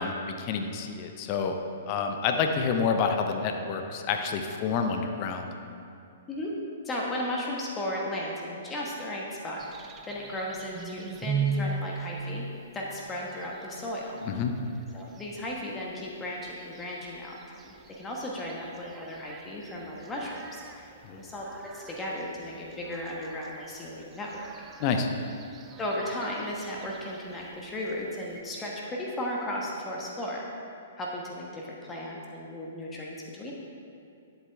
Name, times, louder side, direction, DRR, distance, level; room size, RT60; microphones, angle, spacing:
voice 1, 0.0-1.5 1.9-5.5 14.2-14.5 21.0-21.2 24.8-25.1, left 5 dB, 40° left, 5 dB, 0.7 m, -28 dB
voice 2, 6.8-12.4 12.7-14.1 14.9-21.5 21.7-24.5 25.8-30.4 31.0-33.5, left 1 dB, 15° left, -3 dB, 1.2 m, -35 dB
sound 1, 9.6-28.4, right 5 dB, 20° right, 0.5 m, -40 dB
10.5 x 7.9 x 3.5 m, 2.6 s
hypercardioid pair, 120°, 0 cm